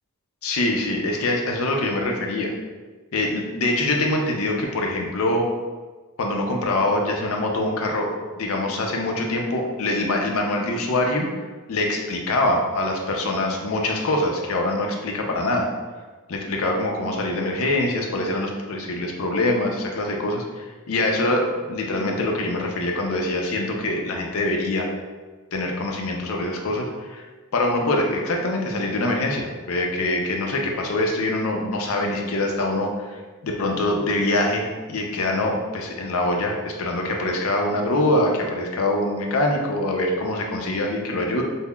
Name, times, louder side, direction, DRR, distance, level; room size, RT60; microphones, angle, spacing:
voice 1, 0.4-2.5 3.1-5.5 6.2-8.1 8.4-11.3 11.7-15.7 16.3-24.9 25.5-27.3 27.5-41.4, left 1 dB, 70° left, 1 dB, 0.5 m, -24 dB
5.4 x 2.0 x 2.3 m, 1.4 s
head